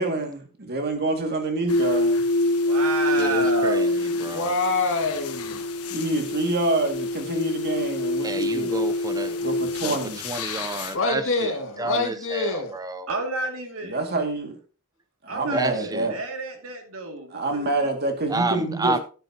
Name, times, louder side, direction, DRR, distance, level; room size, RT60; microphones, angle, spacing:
voice 1, 0.0-2.2 5.9-8.9 9.4-10.2 13.8-14.6 15.2-16.2 17.3-19.0, right 2 dB, 50° right, 2.3 m, -27 dB
sound 1, 1.7-10.9, left 2 dB, 80° left, 1.3 m, -26 dB
voice 2, 2.6-4.1 10.9-11.0 13.1-14.0 15.3-17.9, right 3 dB, 70° right, 2.5 m, -31 dB
voice 3, 3.2-4.5 8.2-9.4 9.8-10.0 10.2-11.5 11.8-13.1 15.5-16.1 18.3-19.0, right 2 dB, 15° right, 0.7 m, -30 dB
voice 4, 4.2-5.5 10.9-12.7, left 3 dB, 60° left, 2.2 m, -25 dB
12.0 x 9.9 x 2.9 m
head